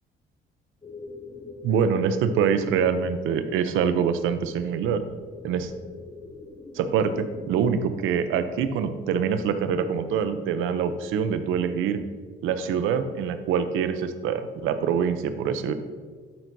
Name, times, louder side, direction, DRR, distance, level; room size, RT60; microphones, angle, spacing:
sound 1, 0.8-9.1, left 3 dB, 20° left, 0.8 m, -43 dB
voice 1, 1.6-5.0 5.4-5.7 6.7-12.0 12.4-15.7, right 7 dB, 90° right, 10 dB, 0.6 m, -25 dB
12.0 x 5.8 x 2.7 m, 1.5 s
cardioid pair, 90°, 20 cm